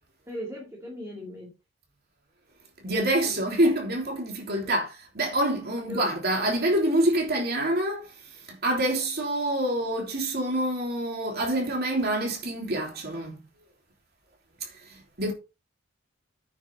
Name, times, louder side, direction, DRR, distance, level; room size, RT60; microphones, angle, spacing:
voice 1, 0.3-1.5 3.1-3.4 4.6-4.8 5.8-6.1, equal, 15° right, 2.4 m, -39 dB
voice 2, 2.8-13.4 14.6-15.3, right 1 dB, 50° right, 3.3 m, -27 dB
9.3 x 7.1 x 4.1 m
head